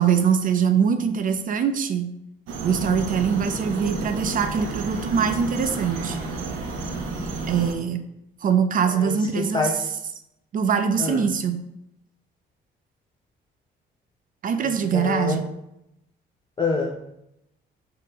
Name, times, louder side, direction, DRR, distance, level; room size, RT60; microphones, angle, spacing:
voice 1, 0.0-2.1 2.6-6.2 7.5-8.0 8.4-9.7 10.5-11.6 14.4-15.5, right 7 dB, 45° right, 8 dB, 0.4 m, -23 dB
sound 1, 2.5-7.7, right 3 dB, 85° right, 0.6 m, -31 dB
voice 2, 8.8-9.7 11.0-11.3 14.6-15.4 16.6-17.2, left 4 dB, 25° left, 1 dB, 0.4 m, -27 dB
3.7 x 2.1 x 4.0 m, 0.83 s
cardioid pair, 90°, 20 cm